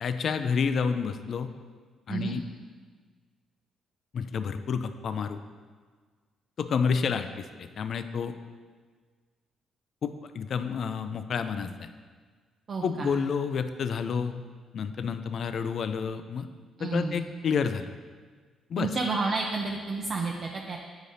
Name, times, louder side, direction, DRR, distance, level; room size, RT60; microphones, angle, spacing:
voice 1, 0.0-1.5 2.1-2.4 4.1-5.4 6.6-8.3 10.0-11.9 12.8-14.4 14.7-16.5 16.8-17.9 18.7-18.9, left 6 dB, 60° left, 9 dB, 0.4 m, -29 dB
voice 2, 12.7-13.1 16.8-17.2 18.8-20.8, right 3 dB, 50° right, -1 dB, 0.6 m, -30 dB
8.9 x 4.9 x 2.7 m, 1.5 s
cardioid pair, 90°, 0 cm